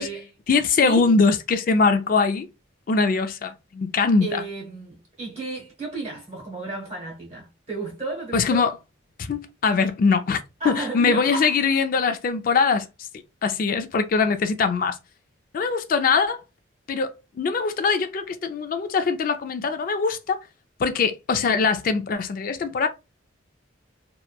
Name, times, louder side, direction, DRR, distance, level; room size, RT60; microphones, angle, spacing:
voice 1, 0.5-2.5 2.9-4.4 8.3-8.7 9.2-12.9 13.4-15.0 15.5-16.4 16.9-17.1 17.4-20.4 20.8-22.9, left 4 dB, 45° left, 0.3 m, -22 dB
voice 2, 4.2-8.7 10.6-11.5, right 3 dB, 30° right, 0.8 m, -33 dB
2.9 x 2.1 x 2.2 m
head